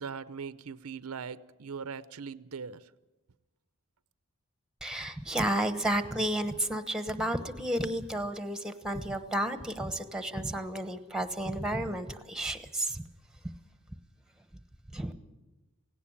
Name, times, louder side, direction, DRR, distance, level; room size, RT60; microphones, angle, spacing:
voice 1, 0.0-2.8, right 6 dB, 90° right, 0.7 m, -40 dB
voice 2, 4.8-13.0 14.9-15.1, right 1 dB, 5° right, 1.1 m, -32 dB
17.5 x 17.0 x 8.7 m
head